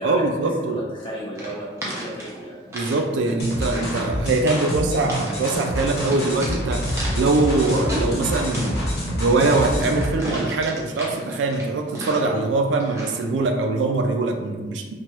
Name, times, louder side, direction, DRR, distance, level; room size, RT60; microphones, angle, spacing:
voice 1, 0.0-0.8 2.7-6.9 7.1-8.9 9.1-14.9, right 3 dB, 90° right, 4 dB, 0.3 m, -22 dB
voice 2, 0.6-2.6, right 1 dB, 30° left, -6 dB, 0.8 m, -34 dB
sound 1, 1.3-3.0 3.3-4.0 4.3-4.7 5.1-5.5 6.0-8.1 8.4-12.4 12.8-13.2, right 1 dB, 15° right, 0.5 m, -35 dB
sound 2, 3.4-10.1, equal, 60° left, 1.0 m, -27 dB
3.0 x 2.2 x 2.9 m, 1.4 s
head